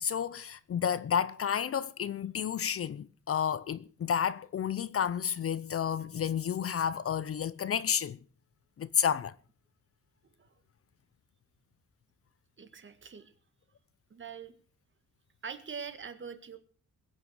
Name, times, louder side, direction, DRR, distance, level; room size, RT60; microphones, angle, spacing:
voice 1, 0.0-8.2 8.8-9.3, left 8 dB, 45° left, 0.6 m, -31 dB
voice 2, 12.6-13.3 14.1-14.5 15.4-16.6, right 6 dB, 40° right, 1.9 m, -43 dB
21.5 x 8.9 x 6.5 m
wide cardioid pair, 175°, 31 cm